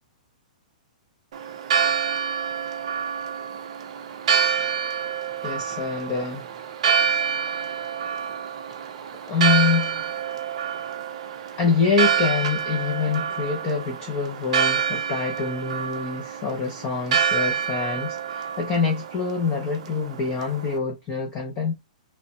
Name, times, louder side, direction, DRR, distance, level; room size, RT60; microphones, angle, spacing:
Church bell, 1.3-20.8, right 7 dB, 50° right, 0.5 m, -27 dB
voice 1, 5.4-6.5 9.3-10.1 11.6-21.8, left 5 dB, 15° left, 0.4 m, -25 dB
3.0 x 2.1 x 2.6 m
hypercardioid pair, 175°, 4 cm